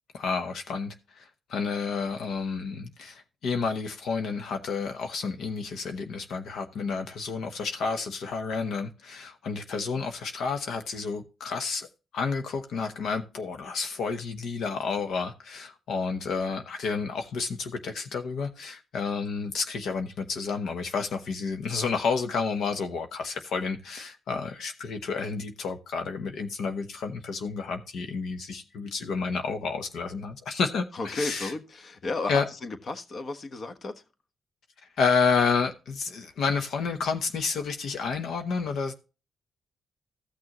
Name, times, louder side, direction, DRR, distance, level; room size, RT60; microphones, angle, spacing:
voice 1, 0.1-11.9 12.1-31.5 32.3-32.4 35.0-38.9, left 5 dB, 75° left, 1.0 m, -30 dB
voice 2, 30.9-34.0, left 3 dB, 50° left, 1.3 m, -34 dB
14.5 x 6.2 x 3.0 m
cardioid pair, 85°, 0 cm